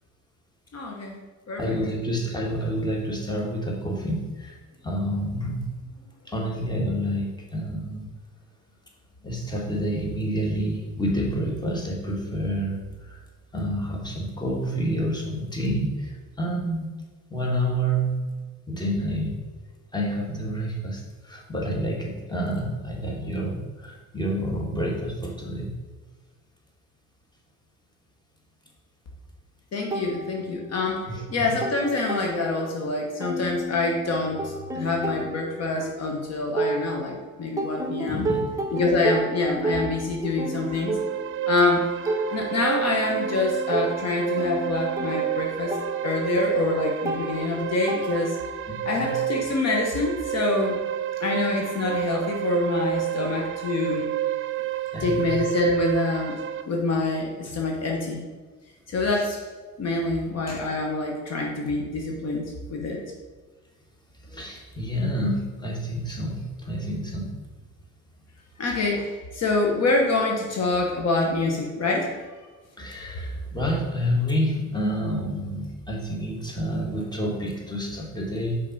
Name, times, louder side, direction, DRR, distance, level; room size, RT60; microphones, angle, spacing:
voice 1, 0.7-1.2 1.5-1.8 29.7-38.3 38.7-41.0 41.5-41.8 42.3-45.8 46.0-48.4 48.8-50.8 51.2-54.1 55.0-56.3 56.6-58.3 58.9-59.4 59.8-63.0 68.6-72.1, left 3 dB, 55° left, 0 dB, 1.1 m, -26 dB
voice 2, 1.6-4.6 4.8-5.7 6.2-8.0 9.2-12.8 13.0-13.2 13.5-16.9 17.3-18.2 18.7-19.4 19.9-25.7 31.1-31.5 38.1-38.5 48.7-49.1 54.9-55.3 64.2-67.4 72.8-78.6, equal, 15° left, -2 dB, 1.6 m, -28 dB
sound 1, 29.9-31.0 31.3-32.9 33.2-37.2 37.6-48.6, right 2 dB, 10° right, 0.9 m, -32 dB
sound 2, 40.3-56.6, right 12 dB, 45° right, 0.6 m, -30 dB
5.4 x 4.1 x 5.3 m, 1.3 s
cardioid pair, 90°, 30 cm